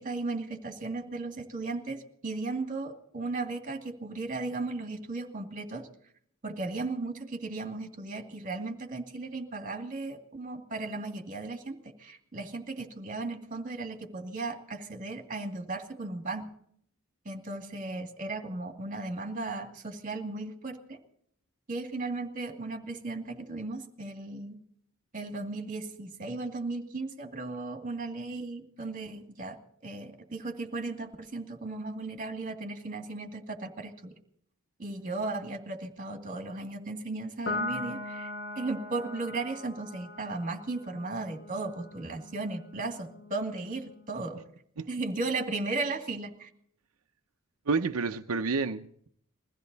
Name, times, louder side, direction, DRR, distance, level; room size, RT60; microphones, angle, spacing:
voice 1, 0.0-5.9 6.4-16.5 17.2-21.0 21.7-24.6 25.1-34.1 34.8-38.3 38.6-44.4 44.9-46.5, right 3 dB, 40° right, 2.4 m, -36 dB
Piano, 37.5-44.2, left 2 dB, 55° left, 1.2 m, -40 dB
voice 2, 47.7-49.1, right 4 dB, 90° right, 0.7 m, -29 dB
22.0 x 15.0 x 4.1 m
head